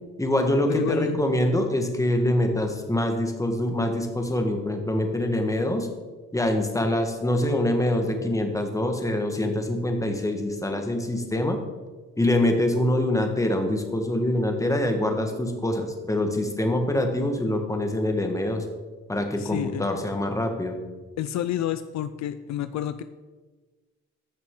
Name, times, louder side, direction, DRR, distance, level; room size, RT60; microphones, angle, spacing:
voice 1, 0.2-5.9 6.3-11.6 12.2-18.6 19.1-20.8, left 1 dB, 10° left, 4 dB, 1.5 m, -25 dB
voice 2, 0.7-1.2 19.4-19.9 21.2-23.0, left 11 dB, 65° left, 12 dB, 0.5 m, -29 dB
14.0 x 6.3 x 3.8 m, 1.3 s
cardioid pair, 90°, 30 cm